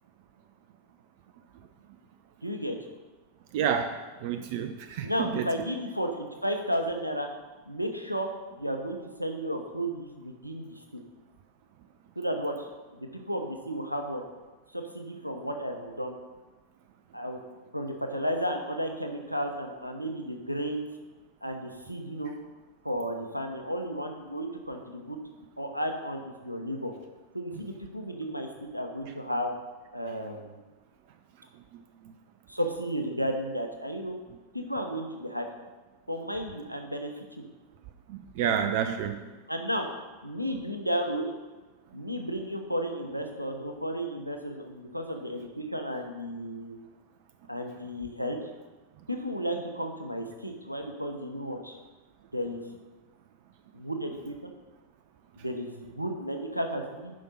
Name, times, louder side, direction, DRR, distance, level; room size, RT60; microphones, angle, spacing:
voice 1, 2.4-2.8 5.0-7.3 7.7-8.3 8.6-11.0 12.2-12.7 12.9-14.2 14.7-16.2 17.1-17.4 17.7-20.9 21.4-22.3 22.8-25.2 25.6-26.9 27.3-29.5 29.9-30.6 32.5-34.1 34.5-35.5 36.1-37.1 39.5-39.9 40.2-41.3 41.9-46.8 47.5-48.4 49.1-51.8 52.3-52.6 53.7-54.5 55.4-57.1, equal, 90° right, 4 dB, 0.9 m, -33 dB
voice 2, 3.5-5.5 38.1-39.2, right 8 dB, 50° right, 7 dB, 0.5 m, -29 dB
11.5 x 5.2 x 4.1 m, 1.2 s
figure-of-eight pair, 90°, 0 cm